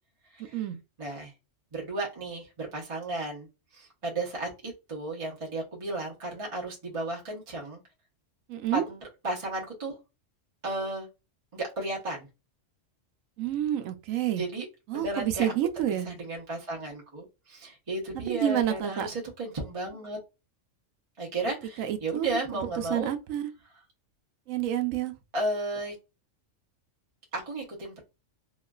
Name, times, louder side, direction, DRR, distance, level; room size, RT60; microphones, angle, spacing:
voice 1, 1.0-1.3 1.7-3.5 3.7-7.8 8.7-9.0 9.2-10.0 10.6-11.1 11.5-12.3 14.4-14.7 14.9-15.5 16.1-20.2 21.2-23.1 25.3-26.0 27.3-28.0, right 2 dB, 30° right, 0.7 m, -34 dB
voice 2, 8.5-8.8 13.4-14.4 14.9-16.1 18.3-19.1 21.8-22.4 22.8-23.5 24.5-25.1, right 11 dB, 90° right, 1.0 m, -29 dB
3.0 x 2.4 x 2.2 m
omnidirectional pair, 1.3 m